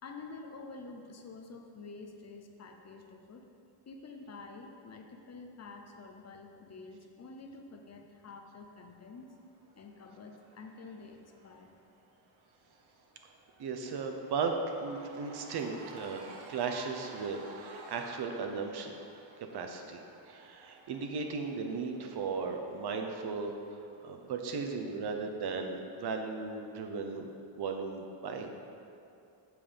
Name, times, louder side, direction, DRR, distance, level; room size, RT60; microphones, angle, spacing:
voice 1, 0.0-3.5 3.9-9.3 9.8-11.7 15.7-15.8, left 3 dB, 35° left, 4 dB, 0.7 m, -48 dB
Cheering / Crowd, 9.0-24.3, right 2 dB, 70° right, 1.2 m, -54 dB
voice 2, 13.6-16.2 16.5-19.0 19.5-23.5 24.0-27.3 27.6-28.5, right 4 dB, 55° right, 4 dB, 0.9 m, -36 dB
7.6 x 5.6 x 5.1 m, 2.6 s
cardioid pair, 135°, 48 cm